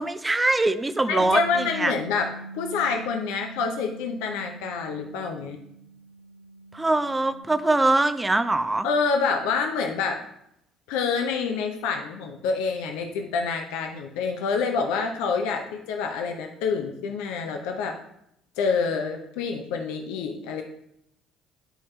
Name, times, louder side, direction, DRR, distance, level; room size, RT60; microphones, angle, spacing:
voice 1, 0.0-1.9 6.7-8.9, right 2 dB, 15° right, 10 dB, 0.6 m, -23 dB
voice 2, 1.1-5.6 8.8-10.2 10.9-18.0 18.6-20.6, left 5 dB, 65° left, 3 dB, 0.7 m, -27 dB
Bass guitar, 1.2-7.4, right 1 dB, 85° right, 0.9 m, -42 dB
10.0 x 4.2 x 3.2 m, 0.78 s
figure-of-eight pair, 55°, 0 cm